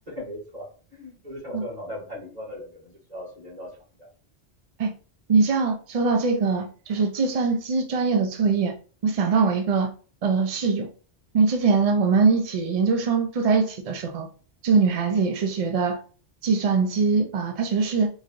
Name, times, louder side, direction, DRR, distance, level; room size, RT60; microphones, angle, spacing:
voice 1, 0.1-3.7 4.0-4.1, left 1 dB, 35° right, 2.0 m, -38 dB
voice 2, 5.3-8.7 9.0-9.9 10.2-10.9 11.3-14.3 14.6-16.0 16.4-18.1, right 4 dB, 60° right, 0.4 m, -22 dB
3.8 x 3.0 x 2.5 m
omnidirectional pair, 1.2 m